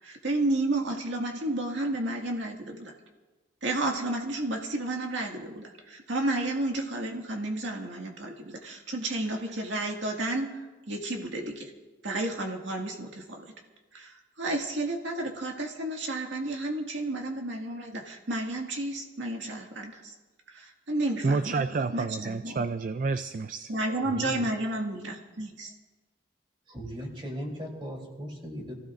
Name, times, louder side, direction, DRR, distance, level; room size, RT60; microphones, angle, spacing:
voice 1, 0.0-3.0 3.6-11.7 12.0-13.5 13.9-20.1 20.5-22.7 23.7-25.7, right 2 dB, 80° right, 0 dB, 2.0 m, -32 dB
voice 2, 21.2-23.7, right 4 dB, 45° right, 11 dB, 0.4 m, -29 dB
voice 3, 24.0-24.4 26.7-28.7, equal, 30° right, -1 dB, 3.5 m, -38 dB
27.0 x 16.0 x 2.6 m, 1.2 s
head